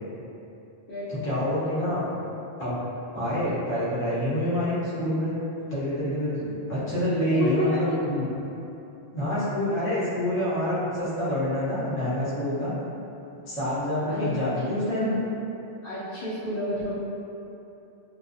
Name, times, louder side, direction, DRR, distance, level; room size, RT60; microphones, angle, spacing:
voice 1, 1.1-2.1 2.6-2.8 3.1-5.4 5.7-8.3 9.1-12.7 13.5-15.1, left 1 dB, 15° left, -12 dB, 0.5 m, -27 dB
voice 2, 7.3-8.0 14.0-14.3 14.8-15.2 15.8-16.9, left 1 dB, 60° left, -12 dB, 0.6 m, -29 dB
2.5 x 2.1 x 2.5 m, 2.8 s
omnidirectional pair, 1.3 m